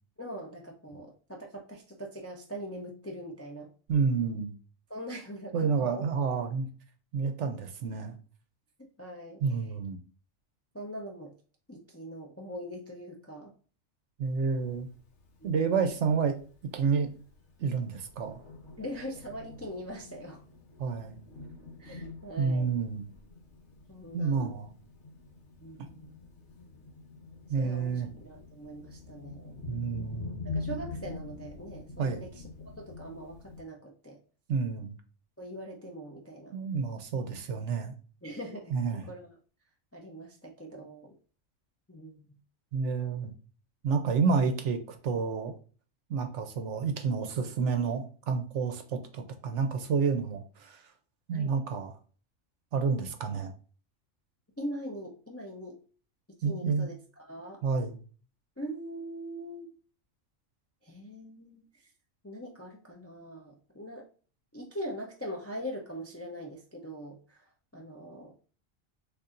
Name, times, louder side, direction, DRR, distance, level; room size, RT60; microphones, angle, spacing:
voice 1, 0.2-3.7 4.9-6.0 9.0-9.4 10.7-11.3 11.7-13.5 15.4-15.5 18.8-20.4 21.8-22.7 23.9-24.5 25.6-26.2 27.6-29.6 30.4-32.4 32.8-34.2 35.4-36.6 38.2-39.3 39.9-41.1 41.9-42.2 51.3-51.5 54.6-55.8 56.4-57.6 58.6-59.7 60.8-61.6 62.2-64.1 64.5-67.5 67.7-68.3, equal, 20° left, 0 dB, 0.4 m, -42 dB
voice 2, 3.9-4.5 5.5-6.7 7.1-8.2 9.4-10.0 14.2-14.9 15.4-16.3 16.7-17.1 17.6-18.4 20.8-21.2 22.4-23.1 24.1-24.7 27.5-28.1 29.7-30.4 32.0-32.2 34.5-34.9 36.5-37.9 38.7-39.0 42.7-43.3 43.8-45.5 46.1-50.8 51.3-51.9 52.7-53.5 56.4-56.9 57.6-58.0, right 5 dB, 65° right, 6 dB, 0.9 m, -29 dB
Thunder, 14.3-33.6, left 3 dB, 60° left, 1.2 m, -45 dB
6.6 x 2.7 x 2.5 m, 0.39 s
omnidirectional pair, 1.4 m